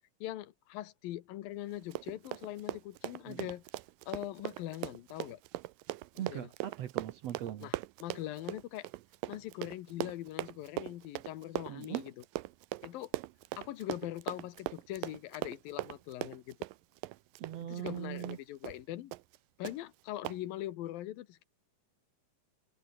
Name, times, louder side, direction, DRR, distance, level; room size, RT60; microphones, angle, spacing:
voice 1, 0.2-3.6 4.1-5.4 6.1-6.5 7.6-7.7 8.0-8.9 9.3-12.1 12.8-13.1 13.6-16.6 17.6-19.1 19.6-21.4, left 14 dB, 90° left, 3.0 m, -42 dB
Run, 1.8-18.4 18.6-18.8 19.1-19.4 19.6-19.8 20.2-20.4, right 17 dB, 80° right, 2.4 m, -41 dB
voice 2, 6.2-7.7 11.7-12.0 17.4-18.4, right 11 dB, 65° right, 1.8 m, -40 dB
omnidirectional pair, 4.0 m